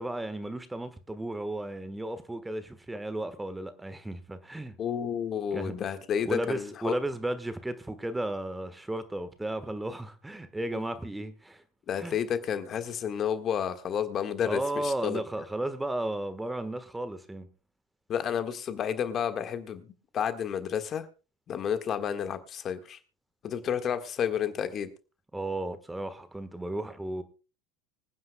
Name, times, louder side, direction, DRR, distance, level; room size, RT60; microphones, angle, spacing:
voice 1, 0.0-4.7 5.5-5.8 6.2-11.6 12.0-12.1 14.4-17.5 25.3-27.2, right 1 dB, 10° right, 1.4 m, -34 dB
voice 2, 4.8-6.9 10.7-10.8 11.9-15.2 18.1-19.8 20.1-21.1 21.5-23.0 23.4-24.9, left 8 dB, 40° left, 1.6 m, -31 dB
25.0 x 9.5 x 2.2 m
hypercardioid pair, 85°, 0 cm